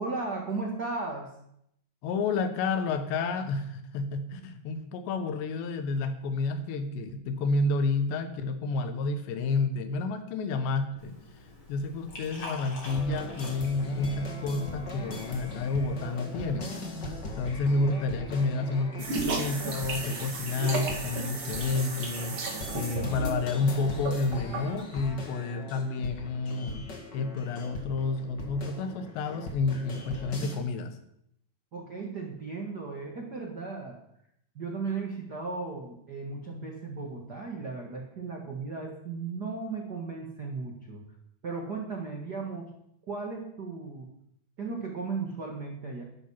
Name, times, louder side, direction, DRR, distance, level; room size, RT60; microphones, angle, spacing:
voice 1, 0.0-1.3 31.7-34.0 34.5-41.0 41.4-42.7 43.1-44.1 44.6-46.0, right 4 dB, 80° right, 0 dB, 0.9 m, -36 dB
voice 2, 2.0-11.2 11.7-16.7 17.4-22.4 22.7-26.9 27.1-31.0, left 3 dB, 85° left, 9 dB, 3.4 m, -30 dB
Liquid, 11.0-16.6, left 2 dB, 30° left, 3.9 m, -46 dB
sound 1, 12.8-30.5, left 2 dB, 50° left, 1.3 m, -40 dB
sound 2, 19.0-24.8, right 3 dB, 40° right, 2.2 m, -34 dB
12.0 x 11.5 x 5.7 m, 0.74 s
omnidirectional pair, 4.9 m